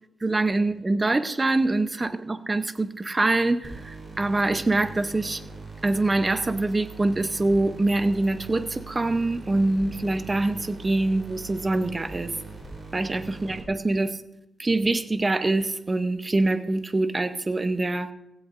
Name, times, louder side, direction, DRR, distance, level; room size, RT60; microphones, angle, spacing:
voice 1, 0.2-5.4 5.8-12.4 12.9-14.2 14.6-18.1, right 2 dB, 20° right, 0.7 m, -24 dB
sound 1, 3.6-13.6, right 4 dB, 40° right, 3.7 m, -41 dB
16.5 x 16.0 x 2.6 m
wide cardioid pair, 140°, 0 cm